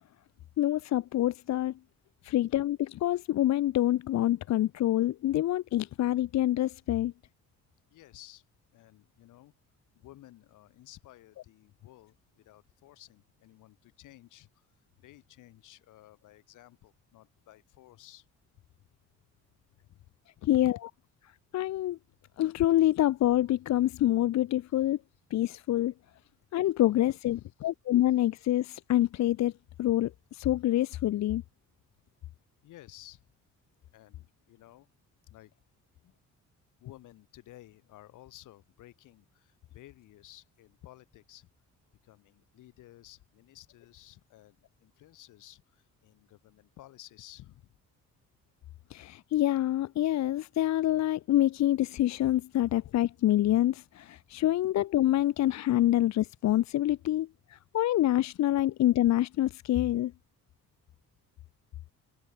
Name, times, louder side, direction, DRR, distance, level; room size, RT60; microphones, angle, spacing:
voice 1, 0.6-1.7 2.2-7.1 20.5-20.7 21.5-22.0 22.4-25.0 25.3-25.9 26.5-27.4 27.9-29.5 29.8-31.4 48.9-57.3 57.7-60.1, left 14 dB, 65° left, 0.7 m, -26 dB
voice 2, 2.2-2.5 7.9-8.5 8.7-9.5 9.9-14.7 15.0-18.3 19.7-20.8 26.9-27.7 32.6-33.2 33.9-34.9 35.3-35.5 36.8-41.5 42.0-47.7 54.3-54.7, left 15 dB, 90° left, 6.7 m, -53 dB
cardioid pair, 90°, 30 cm